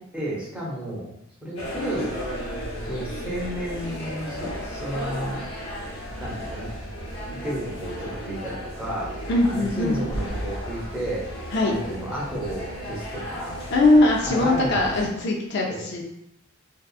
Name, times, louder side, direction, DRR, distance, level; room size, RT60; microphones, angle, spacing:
voice 1, 0.1-1.1 1.4-2.1 2.8-5.4 6.2-6.7 7.4-9.1 9.4-11.3 11.6-13.6 14.2-14.9 15.7-16.0, right 1 dB, 5° right, -7 dB, 0.7 m, -32 dB
sound 1, 1.6-15.1, equal, 75° left, 0.8 m, -34 dB
voice 2, 9.3-10.0 11.5-11.8 13.7-16.0, left 2 dB, 55° left, -1 dB, 0.4 m, -21 dB
2.6 x 2.3 x 2.3 m, 0.78 s
head